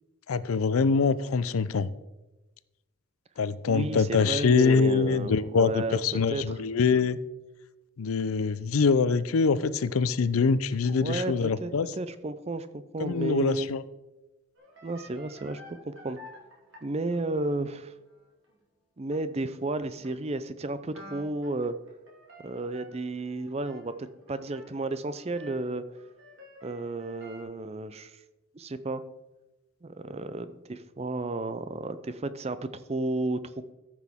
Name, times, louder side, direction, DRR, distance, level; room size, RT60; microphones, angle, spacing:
voice 1, 0.3-1.9 3.4-7.2 8.0-11.9 13.0-13.8, left 5 dB, 85° left, 15 dB, 0.5 m, -24 dB
voice 2, 3.7-6.4 10.9-13.7 14.8-15.6 15.9-16.2 16.8-17.9 19.0-21.7 22.4-25.8 26.6-28.2 28.5-29.0 29.8-33.4, right 2 dB, 30° right, 12 dB, 0.5 m, -32 dB
sound 1, 14.6-17.5 18.1-18.2 18.4-18.6 19.1-19.7 20.0-20.1 20.9-27.4, equal, 60° right, 2.5 m, -51 dB
14.0 x 6.1 x 3.6 m, 1.0 s
head